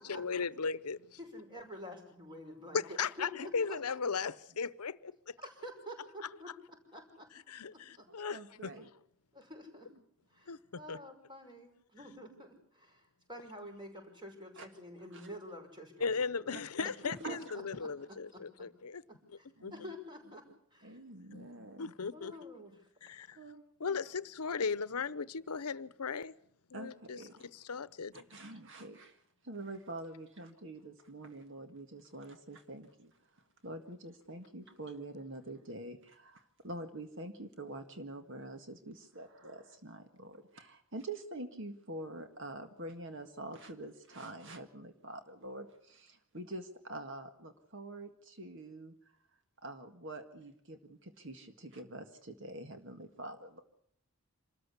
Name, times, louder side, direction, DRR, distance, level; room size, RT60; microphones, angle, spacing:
voice 1, 0.1-1.0 2.7-5.0 7.5-8.7 10.5-10.6 10.9-11.0 16.0-19.0 19.6-19.7 21.3-21.5 21.8-22.3 23.1-23.3 23.8-26.3 26.7-27.2 27.7-28.1, left 5 dB, 90° left, 0.8 m, -36 dB
voice 2, 1.2-2.8 3.2-3.8 5.4-7.3 7.7-8.1 8.5-8.6 9.3-9.9 10.3-16.1 16.4-16.5 17.0-17.9 18.3-18.4 19.1-20.4 20.7-21.0 22.1-22.9, equal, 20° right, 5.7 m, -49 dB
voice 3, 8.3-8.9 14.6-14.7 15.1-15.3 16.5-16.9 17.2-17.5 19.6-19.9 20.8-21.9 23.3-24.0 26.7-27.5 28.1-33.1 33.6-48.9 49.6-53.6, right 2 dB, 55° right, 1.8 m, -46 dB
27.0 x 14.0 x 8.3 m
head